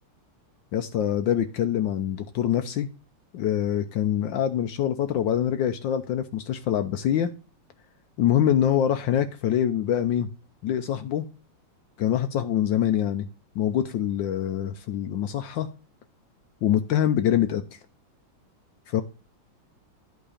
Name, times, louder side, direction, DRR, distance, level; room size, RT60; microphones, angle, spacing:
voice 1, 0.7-2.9 3.3-7.3 8.2-10.3 10.6-11.3 12.0-13.3 13.5-15.7 16.6-17.6 18.9-19.0, left 10 dB, 70° left, 1.2 m, -24 dB
11.0 x 4.0 x 4.9 m
omnidirectional pair, 2.4 m